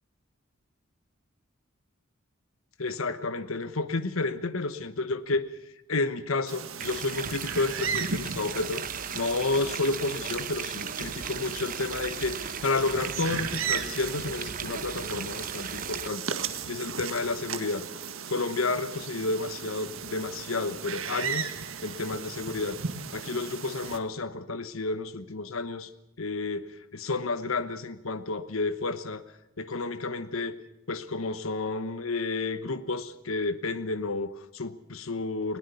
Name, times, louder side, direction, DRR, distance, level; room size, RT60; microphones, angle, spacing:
voice 1, 2.8-5.4 5.9-8.8 9.1-16.2 16.7-17.9 18.3-22.8 23.1-25.9 26.2-29.2 29.6-30.6 30.9-35.6, left 3 dB, 85° left, 12 dB, 1.1 m, -31 dB
sound 1, 6.5-24.0, right 6 dB, 80° right, 1.7 m, -36 dB
sound 2, 6.8-16.1, right 7 dB, 40° right, 1.0 m, -37 dB
21.0 x 18.5 x 6.9 m, 0.85 s
head